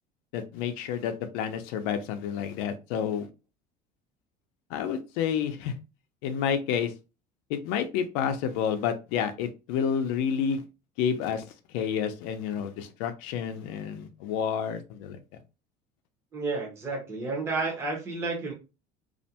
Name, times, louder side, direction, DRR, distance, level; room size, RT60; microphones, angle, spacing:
voice 1, 0.3-3.3 4.7-5.7 6.2-6.9 7.5-10.6 11.0-11.4 11.7-15.2, left 8 dB, 80° left, 7 dB, 0.5 m, -29 dB
voice 2, 16.3-18.5, right 3 dB, 15° right, -2 dB, 0.6 m, -31 dB
2.4 x 2.1 x 2.7 m, 0.30 s
cardioid pair, 170°, 18 cm